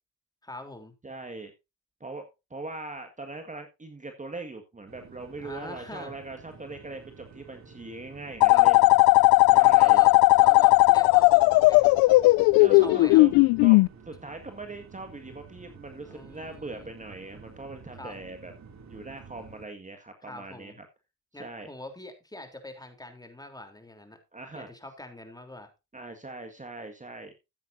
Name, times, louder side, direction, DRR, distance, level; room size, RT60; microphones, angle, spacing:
voice 1, 0.4-0.9 5.4-6.1 8.5-8.9 9.5-12.2 12.8-13.2 16.1-16.9 18.0-18.2 20.2-20.8 21.3-24.2 24.5-25.7, left 1 dB, 10° left, 6 dB, 3.4 m, -43 dB
voice 2, 1.0-1.5 2.0-2.2 2.5-8.8 9.5-10.1 12.6-13.3 13.6-13.8 14.1-18.5 18.9-20.9 21.4-21.7 24.3-24.7 25.9-27.3, right 2 dB, 20° right, 6 dB, 1.8 m, -41 dB
sound 1, 4.9-19.7, right 5 dB, 50° right, 2.7 m, -50 dB
sound 2, 8.4-13.9, left 22 dB, 90° left, 0.5 m, -17 dB
14.0 x 9.1 x 2.7 m, 0.25 s
supercardioid pair, 65°, 34 cm